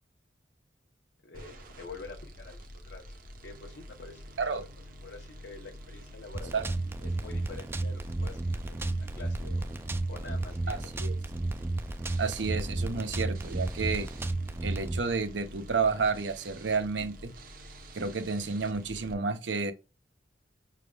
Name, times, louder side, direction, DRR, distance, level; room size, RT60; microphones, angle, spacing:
voice 1, 1.2-3.1 3.4-4.6 5.0-6.6 7.0-8.4 8.7-8.8 9.1-9.7 10.1-10.9, left 3 dB, 70° left, 0.8 m, -47 dB
sound 1, 1.3-19.1, equal, 50° right, 0.8 m, -48 dB
sound 2, 6.3-15.0, right 2 dB, 15° right, 0.3 m, -33 dB
voice 2, 10.7-11.1 12.2-14.1 14.6-17.3 17.9-19.7, right 4 dB, 85° right, 0.7 m, -31 dB
5.9 x 3.5 x 2.2 m
head